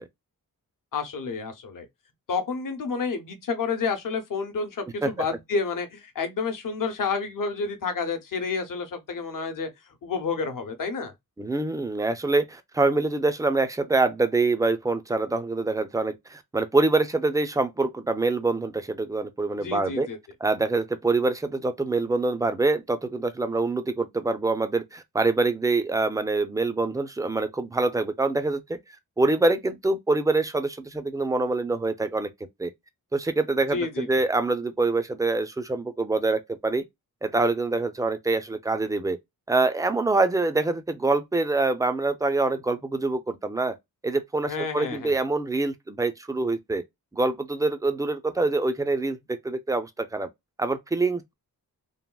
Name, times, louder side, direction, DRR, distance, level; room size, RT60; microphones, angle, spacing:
voice 1, 0.9-1.9 2.3-9.7 10.0-11.1 19.5-20.2 33.7-34.1 44.5-45.1, left 5 dB, 60° left, 0.8 m, -30 dB
voice 2, 11.4-20.1 20.4-28.6 29.2-32.3 32.6-32.7 33.1-36.8 37.2-39.2 39.5-43.7 44.0-46.8 47.1-50.3 50.6-51.3, right 3 dB, 10° right, 0.4 m, -25 dB
3.4 x 2.2 x 2.2 m
wide cardioid pair, 145°, 37 cm